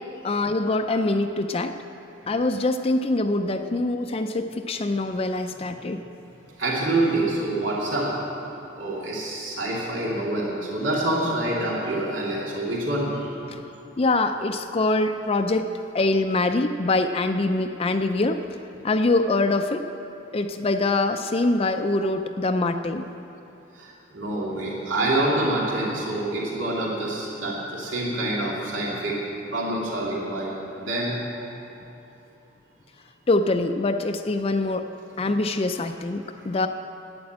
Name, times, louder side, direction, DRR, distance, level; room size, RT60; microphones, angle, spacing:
voice 1, 0.2-1.7 2.3-6.0 14.0-15.7 15.9-18.4 18.8-19.8 20.3-23.1 33.3-34.9 35.2-36.7, left 2 dB, 30° left, 7 dB, 0.4 m, -24 dB
voice 2, 6.6-8.1 8.8-13.3 23.8-29.2 29.5-31.2 31.5-31.6 35.3-35.4, right 1 dB, 80° right, -5 dB, 2.6 m, -26 dB
11.5 x 9.6 x 8.7 m, 2.9 s
head